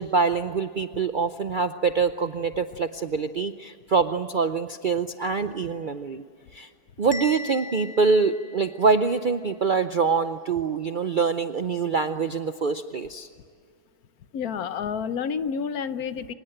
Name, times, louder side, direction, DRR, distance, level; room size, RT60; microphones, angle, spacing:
voice 1, 0.0-6.2 6.5-6.7 7.0-13.3, right 4 dB, 55° right, 9 dB, 0.5 m, -25 dB
Bell, 7.1-9.2, left 2 dB, 5° left, 1.1 m, -39 dB
voice 2, 14.3-16.3, left 6 dB, 70° left, 13 dB, 1.3 m, -29 dB
25.0 x 20.0 x 9.0 m, 2.3 s
omnidirectional pair, 1.7 m